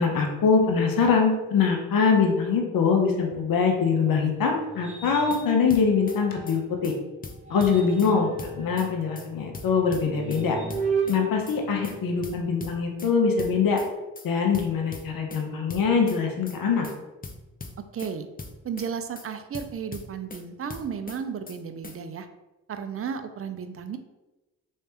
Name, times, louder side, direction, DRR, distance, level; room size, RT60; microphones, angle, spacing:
voice 1, 0.0-6.9 7.5-10.6 11.1-13.8 14.2-16.9, left 5 dB, 55° left, 2 dB, 0.8 m, -23 dB
sound 1, 3.6-6.8 7.3-12.5, right 4 dB, 15° right, 1.1 m, -35 dB
sound 2, 5.0-5.4 5.7-6.2 6.5-6.6 6.8-7.0 7.2-8.1 8.4-8.9 9.2-9.3 9.5-10.4 10.7-11.2 11.5-11.6 11.8-12.0 12.2-13.1 13.4-13.9 14.2-14.3 14.5-15.4 15.7-16.2 16.5-16.6 16.8-17.0 17.2-18.1 18.4-18.9 19.2-19.3 19.5-20.4 20.7-21.2 21.5-21.6 21.8-22.0, left 3 dB, 20° left, 0.6 m, -40 dB
voice 2, 17.9-18.3 18.6-22.3 22.7-24.0, right 7 dB, 35° right, 8 dB, 0.5 m, -33 dB
3.2 x 3.2 x 3.0 m, 1.0 s
supercardioid pair, 40°, 40 cm